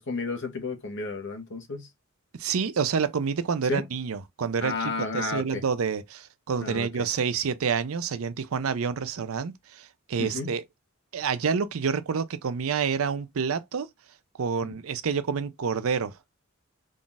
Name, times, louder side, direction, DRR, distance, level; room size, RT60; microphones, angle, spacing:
voice 1, 0.0-1.9 3.7-3.8 4.6-5.6 6.6-6.9 10.2-10.5, left 3 dB, 60° left, 1.1 m, -32 dB
voice 2, 2.4-10.6 11.1-13.9 14.4-16.1, right 6 dB, 80° right, 0.5 m, -28 dB
3.7 x 2.4 x 3.9 m
head